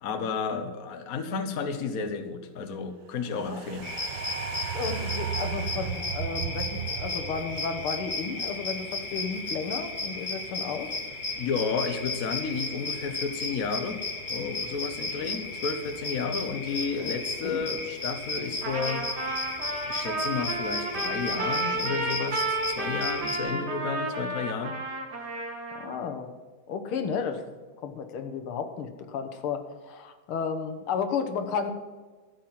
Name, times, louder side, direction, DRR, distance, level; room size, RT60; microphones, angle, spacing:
voice 1, 0.0-3.9 11.4-14.0 14.3-19.1 19.9-24.8, left 5 dB, 50° left, 7 dB, 1.3 m, -32 dB
sound 1, 3.3-9.7 10.0-10.1, right 9 dB, 65° right, 1.5 m, -36 dB
sound 2, 3.8-23.4, left 2 dB, 25° left, 1.4 m, -34 dB
voice 2, 4.7-10.9 17.0-17.1 17.4-17.7 25.8-26.3 26.7-31.7, left 6 dB, 80° left, 7 dB, 2.0 m, -33 dB
Trumpet, 18.6-26.0, right 2 dB, 50° right, 2.4 m, -32 dB
13.5 x 7.4 x 7.6 m, 1.3 s
omnidirectional pair, 2.4 m